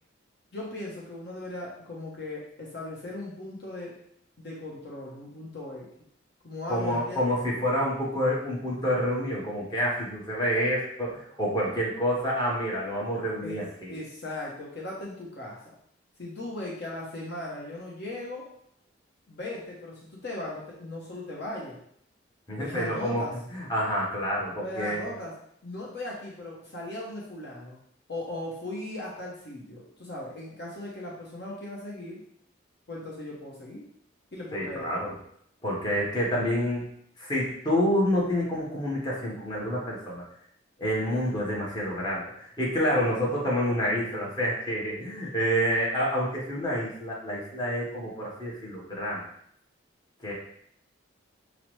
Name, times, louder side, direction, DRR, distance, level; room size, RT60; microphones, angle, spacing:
voice 1, 0.5-4.0 4.4-5.9 6.4-7.2 13.4-13.6 13.9-15.8 16.2-18.5 19.3-21.8 22.5-23.3 24.6-25.3 25.6-27.8 28.1-32.2 32.9-33.9 34.3-35.1, left 1 dB, 55° left, -4 dB, 0.7 m, -38 dB
voice 2, 6.7-13.9 22.5-23.2 23.5-25.1 34.5-35.1 35.6-36.8 37.2-40.2 40.8-49.2 50.2-50.3, equal, 20° left, -5 dB, 1.0 m, -28 dB
5.7 x 2.0 x 3.1 m, 0.68 s
head